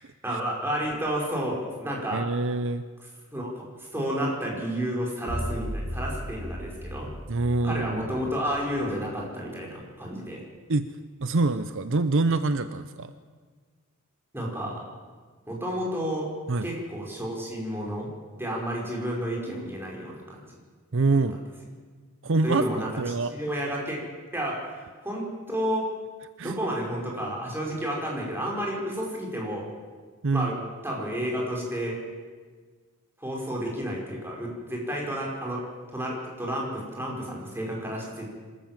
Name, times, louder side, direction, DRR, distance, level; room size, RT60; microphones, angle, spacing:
voice 1, 0.2-2.2 3.3-7.1 7.6-10.4 14.3-14.8 15.5-16.3 16.6-18.1 18.4-20.4 21.1-21.2 22.4-22.9 23.3-24.0 24.3-25.9 26.4-29.7 30.3-30.6 30.8-32.0 33.2-35.6 35.9-38.3, equal, 10° right, -2 dB, 5.1 m, -31 dB
voice 2, 2.1-2.8 7.3-8.0 10.7-10.8 11.2-13.1 16.5-16.7 20.9-21.4 22.2-23.3 26.4-26.5 30.2-30.6, right 3 dB, 60° right, 12 dB, 0.7 m, -25 dB
sound 1, 5.3-9.3, equal, 30° right, 3.0 m, -36 dB
26.0 x 14.0 x 7.5 m, 1.5 s
head